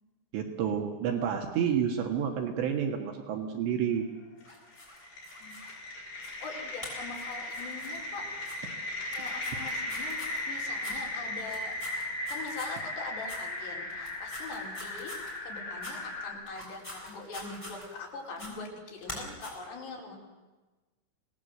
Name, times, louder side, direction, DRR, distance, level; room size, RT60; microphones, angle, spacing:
voice 1, 0.3-4.1, right 8 dB, 75° right, 3 dB, 3.7 m, -29 dB
sound 1, 4.4-16.3, left 1 dB, 50° left, 6.1 m, -37 dB
sound 2, 4.4-5.7 6.2-6.5 6.8-8.0 8.4-8.6 9.1-10.4 10.8-11.0 11.4-12.8 13.2-13.4 13.9-15.3 15.8-15.9 16.5-18.0 18.4-18.5 19.0-19.5, left 1 dB, 5° left, 6.5 m, -45 dB
voice 2, 6.4-8.2 9.2-10.2 10.5-11.7 12.3-15.1 15.4-20.2, left 4 dB, 65° left, -2 dB, 6.5 m, -42 dB
26.5 x 19.0 x 7.8 m, 1.2 s
omnidirectional pair, 5.3 m